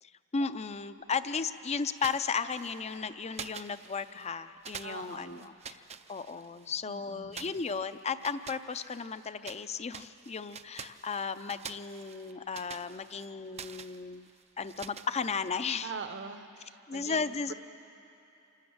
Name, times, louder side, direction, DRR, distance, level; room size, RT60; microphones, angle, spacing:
voice 1, 0.0-5.8 6.1-14.3 14.6-15.9 16.9-17.5, left 5 dB, 30° left, 12 dB, 0.5 m, -35 dB
sound 1, 1.9-3.0 3.3-4.3 4.6-6.7 7.3-9.6 9.9-15.7, right 7 dB, 30° right, 0.5 m, -47 dB
voice 2, 4.8-5.5 6.8-7.5 15.8-17.5, right 4 dB, 55° right, 9 dB, 1.0 m, -43 dB
26.5 x 12.5 x 8.7 m, 2.9 s
head